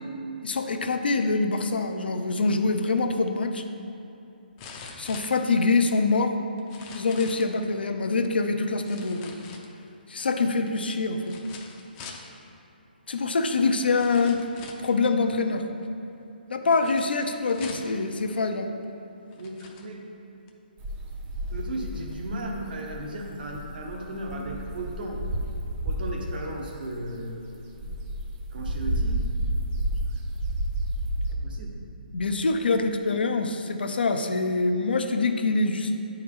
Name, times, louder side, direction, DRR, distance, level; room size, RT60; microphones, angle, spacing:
voice 1, 0.4-3.6 5.0-6.3 6.9-9.4 10.1-11.4 13.1-14.4 14.8-15.6 16.5-18.7 32.1-35.9, left 3 dB, 75° left, 6 dB, 0.6 m, -25 dB
sound 1, 3.2-3.3 4.6-5.9 6.6-7.5 8.8-10.0 11.2-12.3 13.3-13.4 14.0-14.9 16.8-18.0 18.8-18.9 19.3-19.9 20.5-20.6, left 5 dB, 25° left, 0.6 m, -44 dB
voice 2, 19.4-20.1 21.5-25.2 25.8-27.5 28.5-29.3 29.9-30.0 31.3-31.8, right 1 dB, 60° right, -1 dB, 1.2 m, -35 dB
sound 2, 20.8-26.3 26.8-31.3, right 1 dB, 20° right, 0.6 m, -31 dB
9.5 x 4.5 x 3.7 m, 2.9 s
hypercardioid pair, 150°, 5 cm